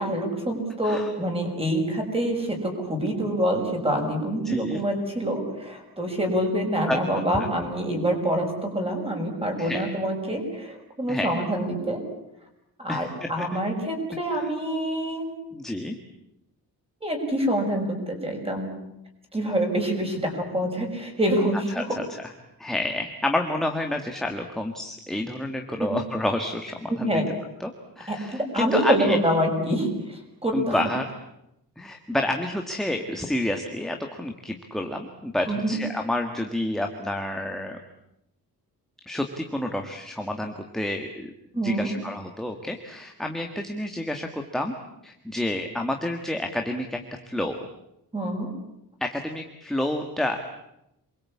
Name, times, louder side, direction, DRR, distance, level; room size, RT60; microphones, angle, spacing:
voice 1, 0.0-12.0 12.8-15.3 17.0-18.7 19.3-21.9 25.8-25.9 26.9-27.2 28.1-30.8 35.5-35.8 41.5-41.9 48.1-48.5, right 1 dB, 15° right, 2 dB, 6.2 m, -26 dB
voice 2, 4.4-4.8 6.9-7.5 9.6-9.9 11.1-11.5 12.9-13.3 14.3-14.5 15.5-16.0 21.7-22.3 22.6-27.2 27.6-29.2 30.5-31.1 31.8-37.8 39.1-41.3 41.6-44.7 45.0-47.0 47.3-47.7 49.0-50.4, left 1 dB, ahead, 4 dB, 1.6 m, -29 dB
28.0 x 22.0 x 8.6 m, 0.85 s
wide cardioid pair, 180°, 38 cm